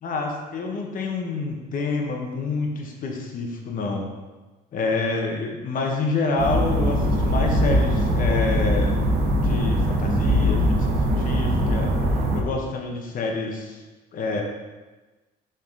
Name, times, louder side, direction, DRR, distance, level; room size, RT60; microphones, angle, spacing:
voice 1, 0.0-4.1 4.7-9.0 9.4-11.9 12.3-13.8 14.1-14.4, left 3 dB, 55° left, 1 dB, 1.3 m, -27 dB
sound 1, 6.4-12.4, equal, 70° right, 1.1 m, -21 dB
7.4 x 4.2 x 4.0 m, 1.2 s
cardioid pair, 110°, 17 cm